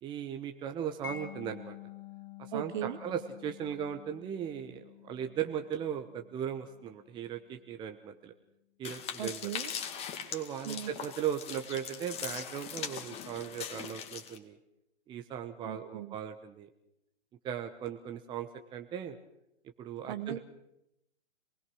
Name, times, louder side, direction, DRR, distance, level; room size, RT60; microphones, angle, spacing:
voice 1, 0.0-1.8 2.4-8.3 8.8-9.5 10.3-14.6 15.1-16.7 17.4-19.2 19.8-20.4, right 9 dB, 15° right, 6 dB, 1.0 m, -38 dB
Mallet percussion, 1.0-7.8, left 10 dB, 55° left, 3.0 m, -50 dB
voice 2, 2.5-3.0 9.2-9.7 10.7-10.9 15.6-16.2 20.1-20.4, right 10 dB, 45° right, 11 dB, 1.9 m, -37 dB
sound 1, 8.8-14.4, left 8 dB, 20° left, 2.1 m, -41 dB
26.0 x 20.0 x 6.3 m, 0.83 s
figure-of-eight pair, 130°, 34 cm